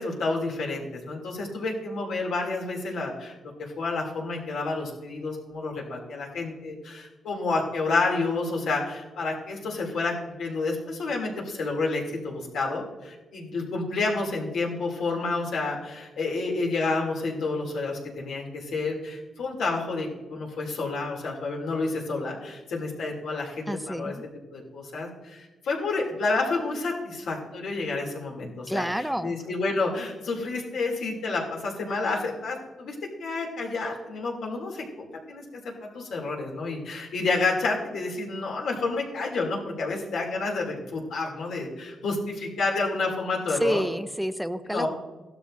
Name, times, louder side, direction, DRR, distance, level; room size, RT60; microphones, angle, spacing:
voice 1, 0.0-24.1 24.5-28.8 29.2-35.4 35.9-43.8 44.6-44.9, left 3 dB, 90° left, -1 dB, 2.5 m, -29 dB
voice 2, 23.7-24.2 28.7-29.3 43.5-44.9, equal, 5° right, 11 dB, 0.4 m, -29 dB
16.0 x 12.5 x 2.5 m, 1.2 s
cardioid pair, 115°, 0 cm